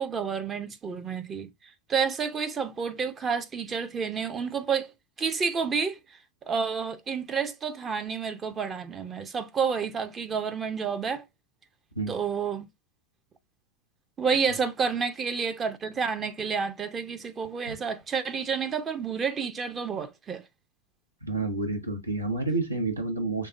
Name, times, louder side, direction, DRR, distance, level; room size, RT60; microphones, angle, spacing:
voice 1, 0.0-1.5 1.9-4.9 5.2-6.0 6.5-11.2 12.1-12.7 14.2-20.4, right 6 dB, 20° right, 0.6 m, -29 dB
voice 2, 21.2-23.5, right 3 dB, 85° right, 1.1 m, -29 dB
5.4 x 3.5 x 2.5 m
figure-of-eight pair, 90°, 0 cm